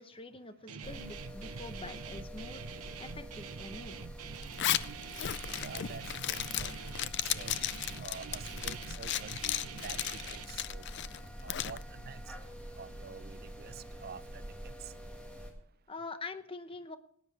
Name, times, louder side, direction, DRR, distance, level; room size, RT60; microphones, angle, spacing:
voice 1, 0.0-4.0 15.9-17.0, left 3 dB, 25° left, 10 dB, 0.8 m, -45 dB
Guitar, 0.7-10.5, right 6 dB, 85° right, 0.7 m, -46 dB
sound 1, 0.8-15.5, equal, 5° left, 1.8 m, -46 dB
Zipper (clothing), 4.4-11.8, left 12 dB, 50° left, 0.4 m, -35 dB
voice 2, 5.6-6.7 7.0-7.5 7.9-9.3 9.8-10.9 11.4-12.2 12.8-14.9, right 6 dB, 45° right, 16 dB, 0.4 m, -48 dB
19.0 x 9.8 x 4.7 m, 0.67 s
head